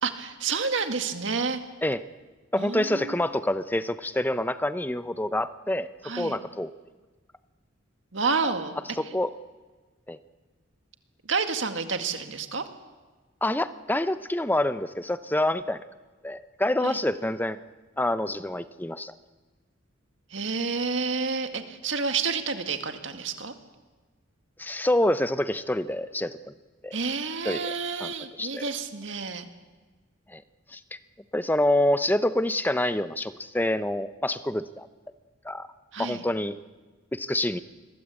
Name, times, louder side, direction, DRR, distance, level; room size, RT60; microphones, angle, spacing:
voice 1, 0.0-1.6 2.6-3.2 6.0-6.4 8.1-8.8 11.2-12.7 16.8-17.0 20.3-23.5 26.9-29.5 35.9-36.2, right 4 dB, 65° right, 7 dB, 2.0 m, -29 dB
voice 2, 2.5-5.9 6.1-6.7 9.0-9.3 10.1-10.2 13.4-15.9 16.2-17.6 18.0-19.1 24.6-26.5 26.8-27.0 27.4-27.7 28.0-28.1 28.4-28.7 30.3-30.4 30.7-31.0 31.3-34.9 35.4-35.7 36.0-36.5 37.1-37.6, left 1 dB, 10° left, 13 dB, 0.7 m, -27 dB
27.5 x 21.5 x 8.4 m, 1.3 s
head